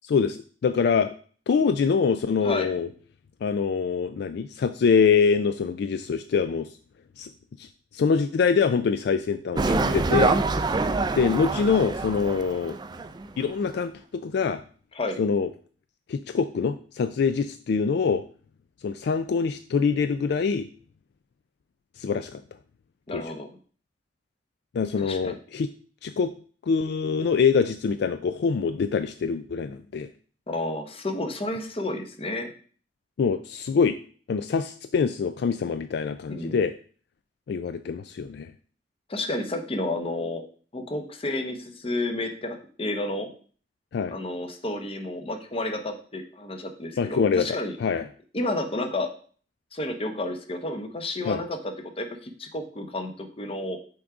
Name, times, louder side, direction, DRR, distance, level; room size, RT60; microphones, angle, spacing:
voice 1, 0.0-1.1 1.5-2.9 3.4-6.7 7.2-7.3 7.6-10.4 11.1-12.8 13.4-14.6 15.2-15.5 16.1-18.2 18.8-20.7 22.0-22.4 23.1-23.2 24.7-25.7 26.0-26.3 26.6-30.1 33.2-34.0 34.3-36.7 37.5-38.5 43.9-44.2 47.0-48.1 51.3-51.4, left 5 dB, 65° left, 10 dB, 0.3 m, -24 dB
sound 1, 9.6-13.4 13.7-13.8, right 3 dB, 25° right, 0.4 m, -25 dB
voice 2, 23.1-23.5 25.0-25.3 30.5-32.5 36.3-36.6 39.1-40.4 40.7-43.3 44.1-47.7 48.3-49.1 49.7-53.8, left 2 dB, 30° left, 6 dB, 0.8 m, -31 dB
6.1 x 3.7 x 4.8 m, 0.43 s
head